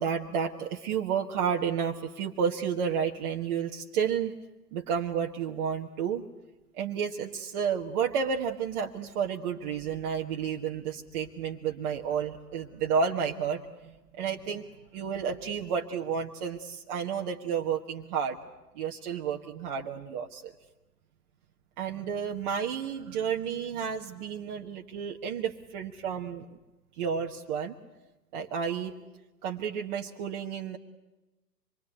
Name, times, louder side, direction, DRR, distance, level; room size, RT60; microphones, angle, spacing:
voice 1, 0.0-4.3 4.7-6.2 6.8-14.7 14.9-18.4 18.7-20.5 21.8-26.4 27.0-27.7 28.3-28.9 29.4-30.8, right 7 dB, 30° right, 0 dB, 1.4 m, -31 dB
26.0 x 23.0 x 9.1 m, 1.0 s
figure-of-eight pair, 120°, 48 cm